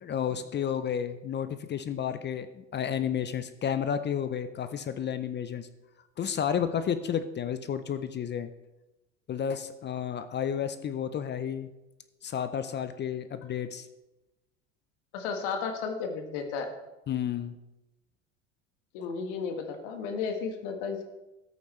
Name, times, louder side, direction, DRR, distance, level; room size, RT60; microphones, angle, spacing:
voice 1, 0.0-5.7 6.2-8.5 9.3-11.7 12.2-13.9 17.1-17.6, left 8 dB, 30° left, 12 dB, 0.6 m, -31 dB
voice 2, 15.1-16.7 18.9-21.0, left 5 dB, 65° left, 5 dB, 1.6 m, -33 dB
13.5 x 8.5 x 3.2 m, 1.0 s
hypercardioid pair, 75°, 38 cm